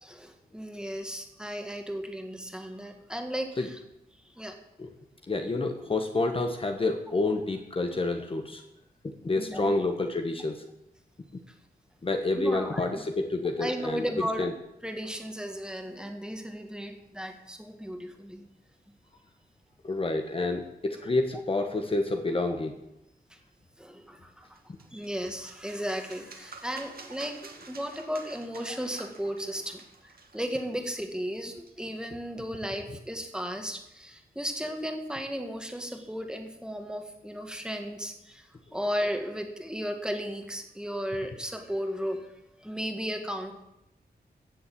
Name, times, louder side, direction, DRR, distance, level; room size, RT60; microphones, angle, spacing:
voice 1, 0.0-3.8 4.2-4.6 9.4-9.8 11.5-11.6 12.3-13.0 13.6-14.5 14.8-18.4 23.3-23.4 23.8-24.5 24.9-42.3 42.6-43.5, equal, 5° right, 4 dB, 1.8 m, -35 dB
voice 2, 5.3-8.6 9.2-10.6 12.0-14.0 14.4-14.5 19.8-22.7, left 2 dB, 35° left, 5 dB, 1.2 m, -28 dB
sound 1, 24.5-32.1, right 4 dB, 65° right, 2.1 m, -50 dB
15.5 x 7.1 x 8.6 m, 0.87 s
wide cardioid pair, 135°, 17 cm